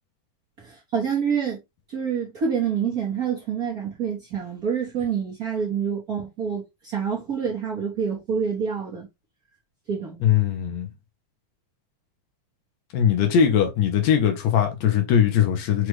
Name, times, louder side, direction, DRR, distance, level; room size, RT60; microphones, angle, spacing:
voice 1, 0.6-1.6 1.9-9.1 9.9-10.2, right 7 dB, 55° right, 1.0 m, -27 dB
voice 2, 10.2-10.9 12.9-15.9, left 8 dB, 70° left, 1.8 m, -20 dB
6.1 x 2.5 x 3.1 m
omnidirectional pair, 4.0 m